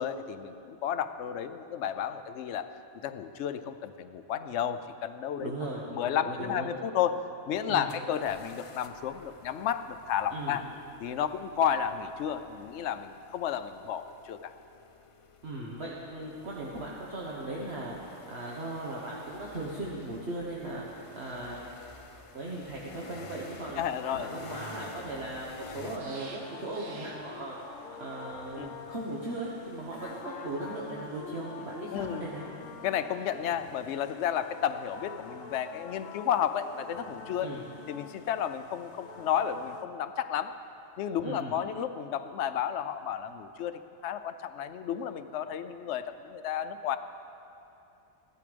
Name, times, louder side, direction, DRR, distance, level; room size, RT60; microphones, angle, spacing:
voice 1, 0.0-2.7 3.0-5.5 5.9-10.7 11.0-14.5 23.8-24.3 28.6-28.7 31.9-32.2 32.8-37.5 37.9-40.5 41.0-47.0, left 9 dB, 70° left, 9 dB, 0.9 m, -32 dB
voice 2, 5.4-6.7 7.7-7.9 10.3-10.6 15.4-21.8 22.3-23.8 24.1-25.5 25.7-32.5 37.4-37.7 41.2-41.6, right 2 dB, 55° right, -4 dB, 1.5 m, -38 dB
sound 1, 7.9-26.0, left 4 dB, 55° left, 0.3 m, -51 dB
sound 2, 18.0-30.8, right 3 dB, 85° right, 1.6 m, -56 dB
sound 3, 23.8-39.8, left 6 dB, 85° left, 1.1 m, -47 dB
15.0 x 12.0 x 5.1 m, 2.7 s
omnidirectional pair, 1.3 m